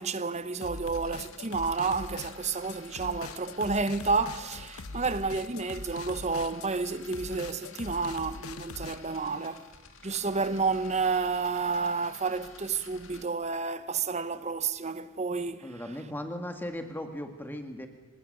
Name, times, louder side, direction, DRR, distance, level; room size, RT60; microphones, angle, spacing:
voice 1, 0.0-9.7 10.0-15.7, right 4 dB, 30° right, 0.9 m, -30 dB
sound 1, 0.6-9.0, left 4 dB, 80° left, 0.8 m, -42 dB
sound 2, 0.6-13.2, left 4 dB, 60° left, 2.1 m, -51 dB
voice 2, 15.6-17.9, left 1 dB, 10° left, 1.8 m, -37 dB
26.0 x 19.5 x 6.7 m
head